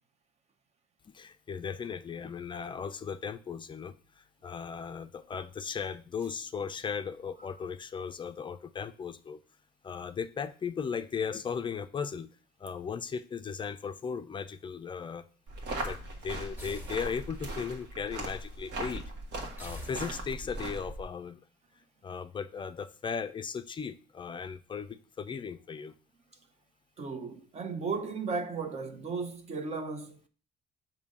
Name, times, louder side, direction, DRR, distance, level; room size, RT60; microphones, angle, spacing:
voice 1, 1.1-9.4 9.8-12.3 12.6-15.2 15.8-19.0 19.6-21.4 22.0-25.9, left 6 dB, 30° left, 0.4 m, -37 dB
sound 1, 15.5-21.0, right 1 dB, 85° right, 1.4 m, -39 dB
sound 2, 16.6-17.6 19.6-20.6, left 1 dB, 10° right, 1.3 m, -46 dB
voice 2, 27.0-30.2, right 4 dB, 40° right, 0.7 m, -35 dB
6.9 x 2.7 x 5.3 m
cardioid pair, 110°, 17 cm